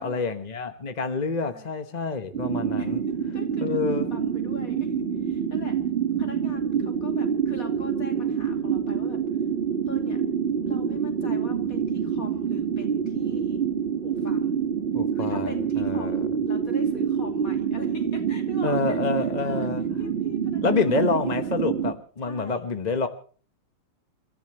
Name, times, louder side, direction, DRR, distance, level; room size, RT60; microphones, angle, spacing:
voice 1, 0.0-3.0 3.6-4.1 14.9-16.3 18.6-19.8 20.6-23.1, left 4 dB, 30° left, 8 dB, 0.9 m, -27 dB
voice 2, 1.4-1.7 2.8-3.0 3.3-5.8 6.2-9.2 9.9-10.2 10.6-13.6 14.0-14.6 15.1-19.0 19.4-19.7 20.0-21.7 22.2-22.6, left 3 dB, 45° left, 4 dB, 3.3 m, -42 dB
sound 1, 2.3-21.9, right 7 dB, 30° right, 1.6 m, -27 dB
30.0 x 14.5 x 3.1 m, 0.41 s
omnidirectional pair, 2.1 m